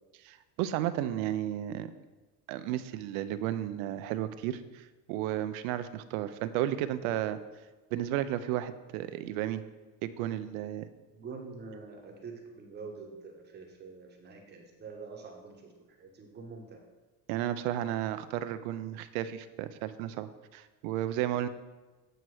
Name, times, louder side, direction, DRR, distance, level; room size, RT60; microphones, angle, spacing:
voice 1, 0.2-1.9 2.5-7.4 7.9-9.6 10.0-10.9 17.3-21.5, right 12 dB, 85° right, 13 dB, 0.5 m, -33 dB
voice 2, 11.1-16.8, right 4 dB, 25° right, 2 dB, 0.9 m, -46 dB
7.8 x 2.9 x 4.6 m, 1.2 s
cardioid pair, 140°, 41 cm